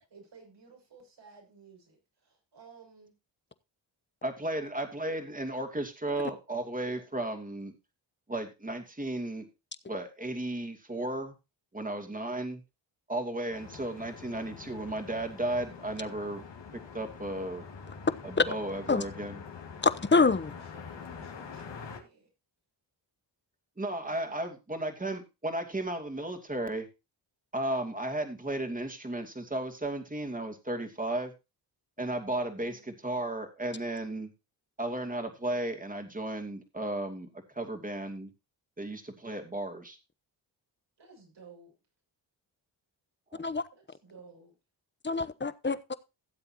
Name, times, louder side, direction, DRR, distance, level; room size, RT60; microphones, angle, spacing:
voice 1, 0.1-3.1 20.5-22.3 24.0-24.4 32.4-32.9 41.0-41.7 43.7-44.6, right 4 dB, 70° right, 6.9 m, -55 dB
voice 2, 4.2-7.7 8.3-9.5 9.9-11.3 11.7-12.6 13.1-16.4 16.9-17.7 18.2-19.4 23.8-26.9 27.5-31.3 32.0-34.3 34.8-37.3 37.5-38.3 38.8-40.0 43.3-43.4, right 1 dB, 20° right, 2.7 m, -34 dB
sound 1, 13.5-22.0, left 6 dB, 75° left, 2.6 m, -45 dB
voice 3, 19.8-20.5 43.4-43.6 45.0-45.9, left 4 dB, 25° left, 1.0 m, -26 dB
16.5 x 7.8 x 2.9 m
cardioid pair, 60°, 44 cm